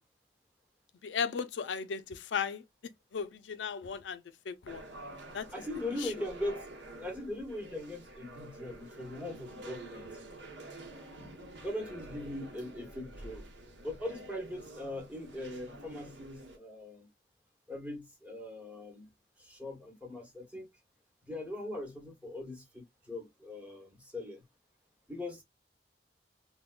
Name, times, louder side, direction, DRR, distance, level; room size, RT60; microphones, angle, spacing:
voice 1, 1.0-2.6 3.1-4.8 5.3-5.5 6.0-6.1, left 6 dB, 90° left, 0.4 m, -36 dB
sound 1, 4.7-16.6, right 1 dB, 85° right, 0.9 m, -48 dB
voice 2, 5.5-6.7 7.0-10.1 11.6-13.5 13.8-17.1 17.7-19.1 19.4-20.7 21.3-24.4 25.1-25.4, left 1 dB, 10° right, 0.9 m, -40 dB
3.5 x 2.2 x 2.3 m
head